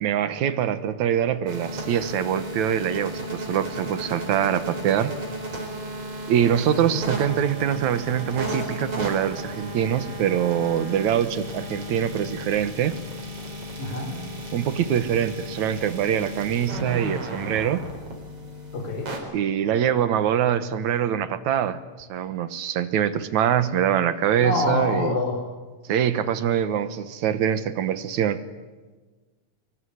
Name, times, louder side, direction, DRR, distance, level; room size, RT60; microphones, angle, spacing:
voice 1, 0.0-5.1 6.3-13.0 14.5-17.8 19.3-25.2 25.9-28.4, right 9 dB, 75° right, 13 dB, 2.5 m, -24 dB
sound 1, 1.5-19.2, right 1 dB, 50° right, 5.4 m, -34 dB
voice 2, 13.8-14.1 18.7-19.1 24.4-25.4, left 2 dB, 75° left, 4 dB, 6.5 m, -26 dB
25.0 x 23.0 x 9.8 m, 1.3 s
omnidirectional pair, 3.4 m